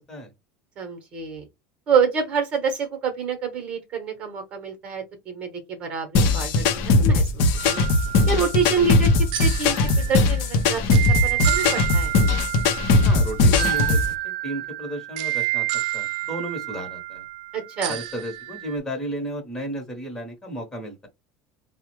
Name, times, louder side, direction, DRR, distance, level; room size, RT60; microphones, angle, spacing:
voice 1, 0.8-1.5 1.9-7.3 7.7-7.8 8.3-12.1 17.5-17.9, right 5 dB, 30° right, 0.9 m, -27 dB
sound 1, 6.1-14.1, left 3 dB, 50° left, 0.6 m, -19 dB
sound 2, 7.6-18.8, right 18 dB, 80° right, 0.4 m, -30 dB
voice 2, 12.9-14.0 14.2-15.7 15.9-17.2 17.9-21.1, right 1 dB, 15° left, 1.0 m, -33 dB
4.6 x 2.1 x 3.0 m
cardioid pair, 175°, 4 cm